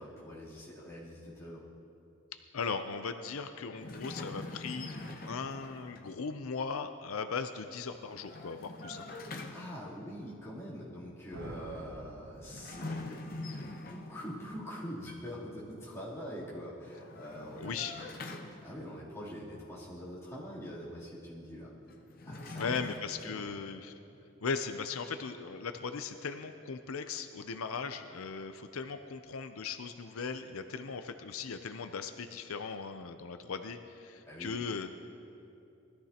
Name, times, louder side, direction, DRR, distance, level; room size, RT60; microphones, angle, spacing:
voice 1, 0.0-1.6 9.5-17.7 18.1-18.2 18.6-21.7 22.3-22.6 23.2-23.4 34.3-34.6, equal, 15° left, -10 dB, 3.2 m, -44 dB
voice 2, 2.5-4.9 5.3-9.0 17.6-17.9 22.6-23.9 24.4-34.9, left 5 dB, 85° left, 8 dB, 0.6 m, -38 dB
sound 1, 3.8-6.1 8.0-9.9 12.4-14.5 16.9-19.0 21.9-23.0, left 2 dB, 45° left, 0.8 m, -44 dB
sound 2, 11.3-13.4, right 1 dB, 75° right, 0.9 m, -48 dB
20.0 x 13.5 x 2.9 m, 2.7 s
head